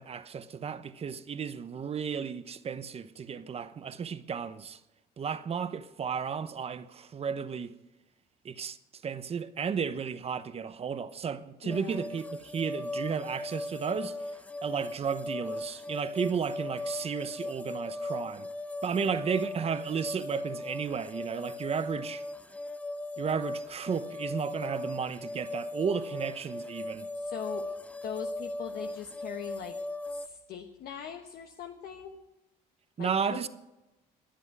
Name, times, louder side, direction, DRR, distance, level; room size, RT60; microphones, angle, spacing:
voice 1, 0.0-4.8 5.2-7.7 8.4-8.8 9.0-14.2 14.6-18.5 18.8-22.2 23.2-27.1 33.0-33.5, right 6 dB, 35° right, 0.9 m, -33 dB
voice 2, 11.6-12.0 19.0-19.2 27.2-27.7 28.0-29.8 30.1-32.2 33.0-33.5, left 8 dB, 65° left, 1.2 m, -41 dB
sound 1, 11.7-30.3, left 2 dB, 10° left, 0.4 m, -38 dB
22.0 x 8.0 x 4.8 m
cardioid pair, 110°, 17 cm